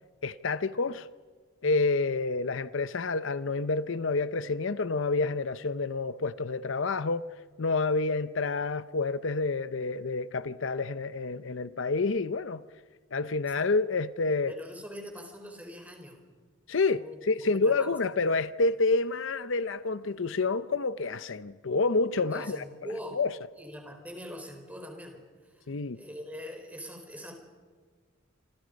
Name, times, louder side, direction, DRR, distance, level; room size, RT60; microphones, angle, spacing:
voice 1, 0.2-1.1 1.6-7.2 7.6-12.6 13.1-14.5 16.7-22.6 23.1-23.3 25.7-26.0, left 3 dB, 65° left, 0.7 m, -28 dB
voice 2, 14.5-16.2 17.0-18.0 22.2-23.2 23.6-25.2 25.5-25.7 25.9-27.4, equal, 5° right, 4.3 m, -42 dB
27.5 x 27.0 x 5.2 m
head